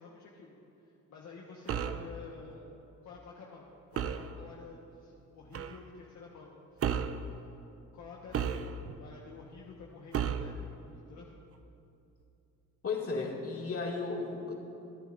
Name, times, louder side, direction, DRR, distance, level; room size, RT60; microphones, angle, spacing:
voice 1, 0.0-2.6 3.0-7.0 7.9-11.3, left 4 dB, 65° left, -3 dB, 1.4 m, -50 dB
sound 1, 1.7-2.1 4.0-4.3 5.5-5.8 6.8-7.2 8.3-9.0 10.1-10.6, right 8 dB, 50° right, 0.6 m, -33 dB
voice 2, 12.8-14.5, left 4 dB, 50° left, -1 dB, 2.4 m, -34 dB
26.5 x 10.0 x 2.6 m, 2.7 s
cardioid pair, 90°, 30 cm